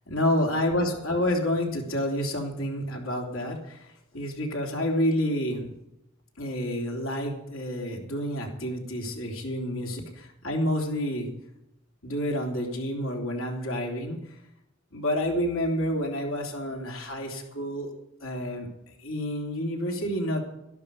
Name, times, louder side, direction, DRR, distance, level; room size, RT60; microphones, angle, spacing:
voice 1, 0.1-5.7 6.4-11.3 12.0-14.2 14.9-17.9 18.2-18.7 19.0-20.4, equal, 80° left, 0 dB, 3.3 m, -29 dB
12.5 x 12.0 x 5.3 m, 0.85 s
head